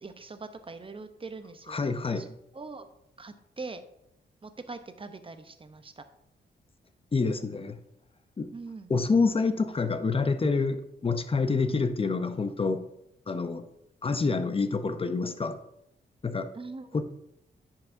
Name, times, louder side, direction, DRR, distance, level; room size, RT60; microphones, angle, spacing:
voice 1, 0.0-1.8 2.2-2.3 2.5-2.9 3.2-3.8 4.4-6.0 8.5-8.9 16.5-16.9, right 3 dB, 30° right, 9 dB, 0.7 m, -42 dB
voice 2, 1.7-2.3 7.1-7.8 8.4-8.5 8.9-12.9 13.3-13.6 14.0-15.6 16.2-16.5 16.9-17.0, left 4 dB, 30° left, 10 dB, 0.6 m, -27 dB
10.0 x 5.7 x 2.6 m, 0.80 s
cardioid pair, 75°, 19 cm